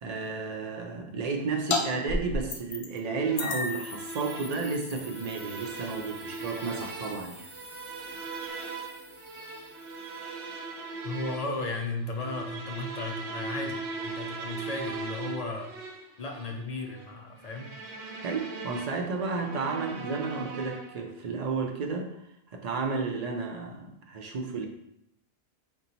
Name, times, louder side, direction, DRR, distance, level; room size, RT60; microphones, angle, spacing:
voice 1, 0.0-7.5 18.2-22.1 22.5-24.7, right 4 dB, 45° right, 2 dB, 0.5 m, -32 dB
sound 1, 1.7-1.8 2.1-3.0 3.4-8.5, left 3 dB, 80° left, 0.9 m, -36 dB
sound 2, 3.1-21.1, right 3 dB, 85° right, 0.9 m, -40 dB
sound 3, 3.2-11.1, equal, 25° right, 1.1 m, -54 dB
voice 2, 11.0-15.7 16.2-17.7, left 2 dB, 55° left, 2 dB, 0.4 m, -35 dB
4.2 x 2.2 x 3.9 m, 0.78 s
omnidirectional pair, 1.1 m